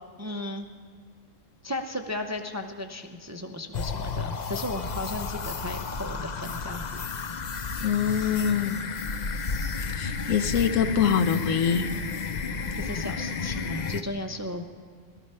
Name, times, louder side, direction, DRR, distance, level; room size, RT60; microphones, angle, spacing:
voice 1, 0.2-0.7 1.6-7.3 12.8-14.6, left 1 dB, 20° right, 4 dB, 0.5 m, -35 dB
sound 1, 3.7-14.0, left 5 dB, 45° left, 0.6 m, -32 dB
voice 2, 7.8-8.8 9.9-11.9, left 7 dB, 85° left, 10 dB, 1.2 m, -24 dB
18.0 x 13.5 x 5.5 m, 2.1 s
omnidirectional pair, 1.3 m